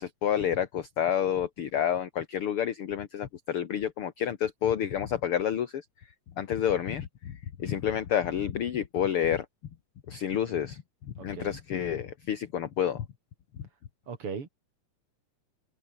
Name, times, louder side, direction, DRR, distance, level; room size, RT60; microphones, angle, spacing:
voice 1, 0.0-5.8 6.4-9.5 10.1-10.8 11.2-13.0, left 9 dB, 50° left, 2.0 m, -29 dB
voice 2, 11.2-11.6 14.1-14.5, right 5 dB, 45° right, 3.7 m, -39 dB
omnidirectional pair, 3.8 m